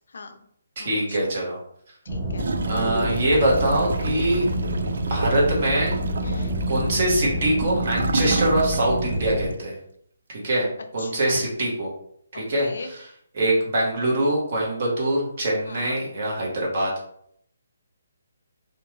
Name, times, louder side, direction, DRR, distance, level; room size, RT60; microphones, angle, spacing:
voice 1, 0.1-0.4 0.8-1.4 2.1-2.5 6.2-6.6 11.0-11.4 12.3-12.9 15.6-16.0, left 4 dB, 70° left, 7 dB, 0.4 m, -40 dB
voice 2, 0.8-1.6 2.7-4.5 5.1-5.9 6.7-9.8 10.4-10.7 10.9-11.9 12.3-13.0 13.3-16.9, right 1 dB, 45° right, -3 dB, 1.1 m, -23 dB
sound 1, 2.1-9.5, right 1 dB, 20° right, 0.8 m, -27 dB
Gurgling / Toilet flush, 2.4-9.2 9.5-9.6, right 3 dB, 70° right, 0.3 m, -31 dB
2.6 x 2.3 x 3.1 m, 0.68 s
hypercardioid pair, 165°, 0 cm